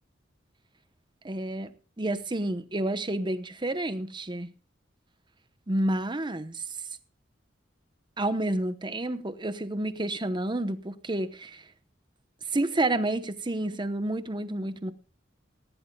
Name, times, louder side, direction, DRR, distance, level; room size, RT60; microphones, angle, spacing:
voice 1, 1.2-1.7 2.0-4.5 5.7-6.6 8.2-11.6 12.5-14.9, right 1 dB, 25° right, 0.9 m, -29 dB
19.0 x 15.0 x 2.3 m
head